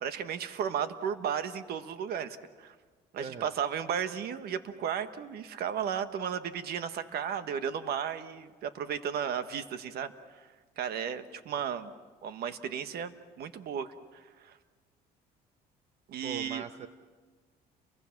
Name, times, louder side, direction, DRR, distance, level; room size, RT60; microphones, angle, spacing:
voice 1, 0.0-2.7 3.1-10.5 10.8-11.9 12.2-14.6 16.1-16.6, right 8 dB, 70° right, 10 dB, 1.5 m, -34 dB
voice 2, 3.2-3.5 16.2-16.9, right 7 dB, 40° right, 9 dB, 1.0 m, -40 dB
30.0 x 23.5 x 6.0 m, 1.4 s
cardioid pair, 110°, 17 cm